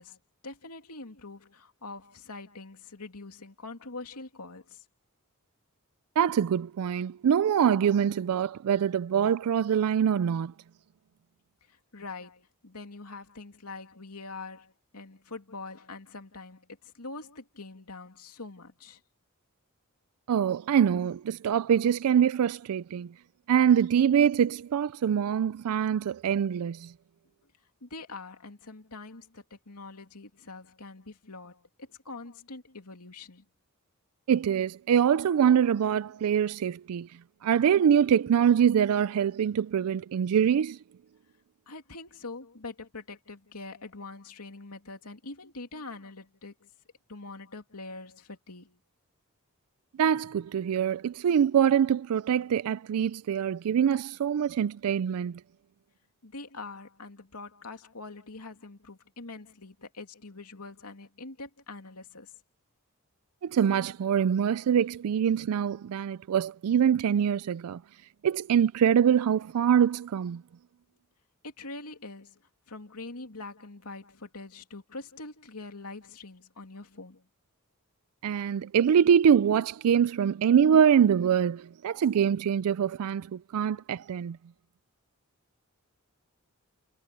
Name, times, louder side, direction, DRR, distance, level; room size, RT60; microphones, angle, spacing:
voice 1, 0.0-4.8 11.6-19.0 27.8-33.4 41.7-46.7 47.1-48.8 56.2-62.4 71.4-72.4 72.7-77.3 83.6-83.8, left 3 dB, 90° left, 2.8 m, -44 dB
voice 2, 6.2-10.5 20.3-23.1 23.5-26.9 34.3-37.1 37.4-40.8 50.0-55.4 63.4-67.8 68.2-70.4 78.2-84.4, right 8 dB, 75° right, 0.3 m, -24 dB
head